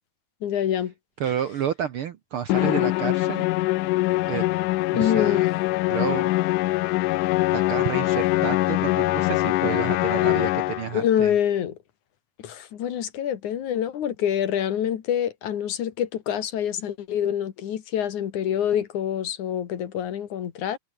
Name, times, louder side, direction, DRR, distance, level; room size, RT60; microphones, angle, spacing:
voice 1, 0.4-0.9 5.0-5.5 10.9-11.8 12.4-20.8, left 10 dB, 65° left, 3.1 m, -26 dB
voice 2, 1.2-3.5 4.3-4.4 4.9-5.5 5.9-6.3 7.5-11.3, right 9 dB, 75° right, 1.2 m, -30 dB
Musical instrument, 2.5-11.0, left 19 dB, 80° left, 2.1 m, -23 dB
omnidirectional pair, 3.8 m